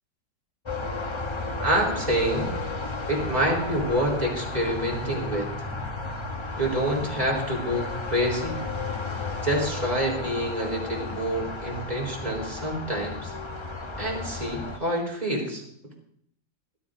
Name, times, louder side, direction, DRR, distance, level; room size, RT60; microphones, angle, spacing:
sound 1, 0.7-14.8, left 3 dB, 35° left, 0.4 m, -33 dB
voice 1, 1.6-2.5 3.1-5.7 6.6-8.6 9.4-13.3 14.0-15.6, right 1 dB, 20° right, -1 dB, 3.8 m, -27 dB
19.5 x 13.0 x 2.6 m, 0.68 s
omnidirectional pair, 2.0 m